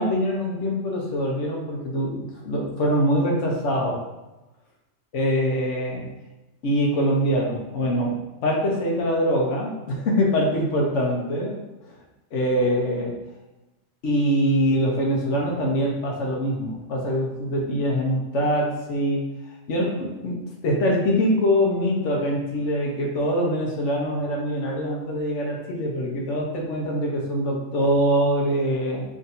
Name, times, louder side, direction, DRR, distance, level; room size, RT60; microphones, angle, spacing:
voice 1, 0.0-4.0 5.1-6.0 6.6-11.6 12.3-13.1 14.0-19.2 19.7-20.4 20.6-29.0, equal, 85° left, -1 dB, 1.1 m, -23 dB
3.6 x 2.6 x 4.0 m, 1.0 s
omnidirectional pair, 1.2 m